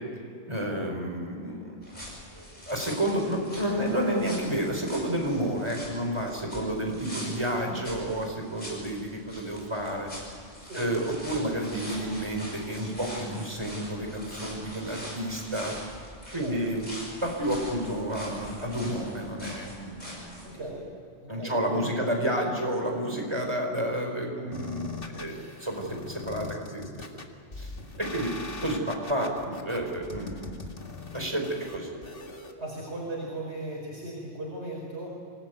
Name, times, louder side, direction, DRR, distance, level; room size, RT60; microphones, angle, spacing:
voice 1, 0.5-1.8 2.3-10.1 10.8-15.7 16.3-16.9 17.2-20.6 21.3-24.9 25.2-25.3 25.6-26.8 27.6-27.7 28.0-30.7 31.1-31.5 31.7-31.9, right 1 dB, 25° right, 2 dB, 4.7 m, -30 dB
sound 1, 1.8-20.5, equal, 40° left, 7.9 m, -43 dB
voice 2, 20.4-20.9 21.2-22.1 32.6-35.1, right 1 dB, 75° right, -3 dB, 5.3 m, -37 dB
sound 2, 24.5-32.5, left 3 dB, 55° left, 2.2 m, -41 dB
26.5 x 19.5 x 9.4 m, 2.4 s
omnidirectional pair, 1.1 m